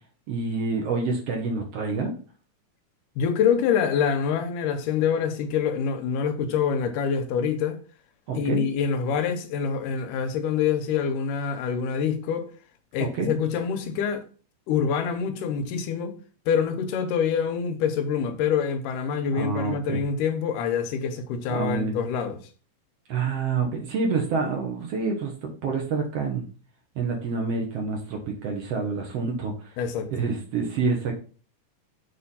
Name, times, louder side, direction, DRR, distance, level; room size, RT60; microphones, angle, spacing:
voice 1, 0.3-2.1 8.3-8.6 13.1-13.3 19.3-20.0 21.5-22.0 23.1-26.5 27.0-29.7 30.1-31.2, right 4 dB, 60° right, 1.9 m, -27 dB
voice 2, 3.2-7.8 8.3-12.5 12.9-14.2 14.7-16.2 16.5-22.4 29.8-30.1, left 7 dB, 90° left, 2.4 m, -26 dB
6.6 x 3.4 x 5.5 m
omnidirectional pair, 3.7 m